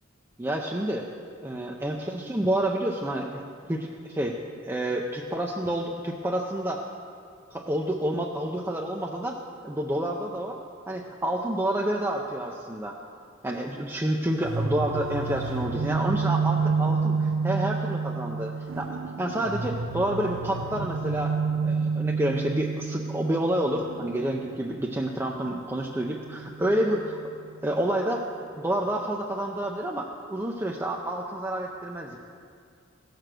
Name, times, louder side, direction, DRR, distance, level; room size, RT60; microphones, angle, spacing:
voice 1, 0.4-1.1 1.4-3.4 3.7-4.4 4.6-6.9 7.5-9.4 9.6-10.6 10.9-13.0 13.4-18.9 19.2-21.4 21.6-27.2 27.6-28.3 28.6-32.2, right 1 dB, 10° right, -1 dB, 0.5 m, -29 dB
sound 1, 14.4-27.2, right 4 dB, 80° right, 0.5 m, -30 dB
15.5 x 6.7 x 6.1 m, 2.3 s
head